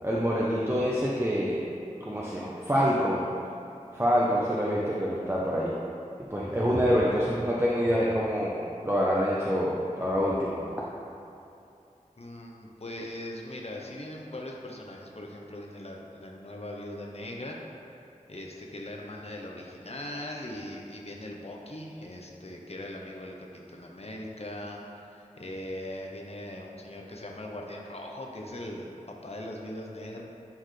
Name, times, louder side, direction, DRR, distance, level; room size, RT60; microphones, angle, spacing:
voice 1, 0.0-1.6 2.0-3.3 3.9-5.7 6.3-10.6, equal, 20° right, -6 dB, 0.8 m, -26 dB
voice 2, 12.2-17.6 18.3-30.2, left 1 dB, 50° left, -1 dB, 0.8 m, -40 dB
11.5 x 4.5 x 3.2 m, 2.7 s
wide cardioid pair, 45°, 14 cm